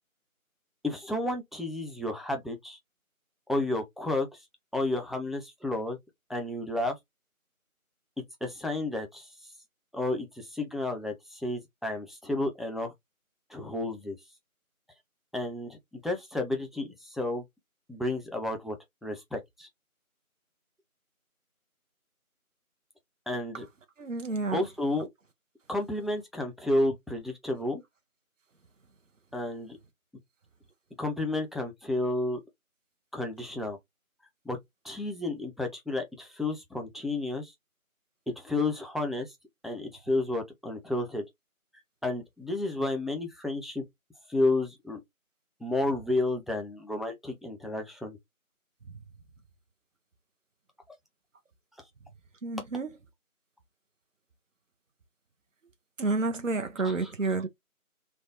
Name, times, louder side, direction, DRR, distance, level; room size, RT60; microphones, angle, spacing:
voice 1, 0.8-2.8 3.5-4.4 4.7-6.0 6.3-7.0 8.4-9.3 9.9-12.9 13.5-14.2 15.3-15.8 16.0-17.4 17.9-18.7 19.0-19.7 23.3-23.6 24.5-25.1 25.7-27.8 29.3-29.8 31.0-32.4 33.1-33.8 34.5-34.6 34.8-37.5 38.3-39.3 39.6-41.2 42.0-43.8 44.3-45.0 45.6-48.2 56.8-57.1, left 2 dB, ahead, 0.5 m, -31 dB
voice 2, 24.0-24.6 52.4-52.9 56.0-57.5, right 3 dB, 60° right, 0.6 m, -29 dB
3.3 x 2.1 x 2.4 m
figure-of-eight pair, 180°, 43 cm